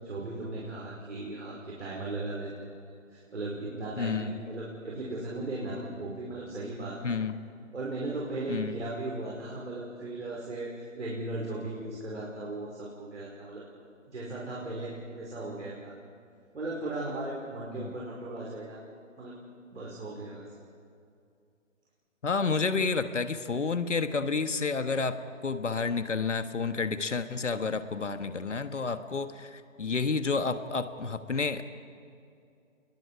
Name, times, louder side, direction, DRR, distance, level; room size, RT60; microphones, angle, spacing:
voice 1, 0.0-7.2 7.7-13.7 14.1-15.9 16.5-18.8 19.2-19.4 19.7-20.5 28.2-28.3, right 2 dB, 60° right, -4 dB, 5.0 m, -37 dB
voice 2, 4.0-4.4 7.0-7.3 8.5-8.8 17.8-17.9 22.2-31.6, left 4 dB, 65° left, 10 dB, 1.5 m, -30 dB
30.0 x 21.5 x 4.8 m, 2.4 s
figure-of-eight pair, 140°, 39 cm